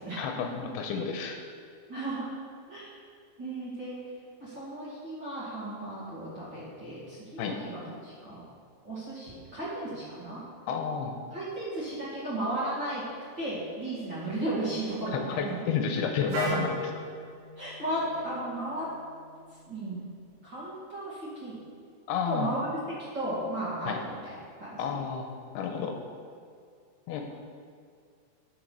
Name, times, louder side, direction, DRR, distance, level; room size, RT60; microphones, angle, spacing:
voice 1, 0.2-1.4 7.4-7.6 10.7-11.2 15.1-17.0 22.1-22.5 23.9-24.0 24.8-25.3 25.5-26.0 27.1-27.3, left 6 dB, 85° left, 4 dB, 2.6 m, -31 dB
voice 2, 1.9-2.3 2.7-2.9 3.4-4.0 4.4-8.4 8.8-10.4 11.3-13.0 13.4-15.5 17.6-18.9 19.7-20.0 20.4-21.6 22.3-22.7 23.1-24.2 24.6-25.0, right 1 dB, 35° right, -9 dB, 2.4 m, -35 dB
Wind instrument woodwind instrument, 16.3-20.2, right 3 dB, 75° right, 3.1 m, -38 dB
12.0 x 6.6 x 4.7 m, 2.2 s
omnidirectional pair, 4.7 m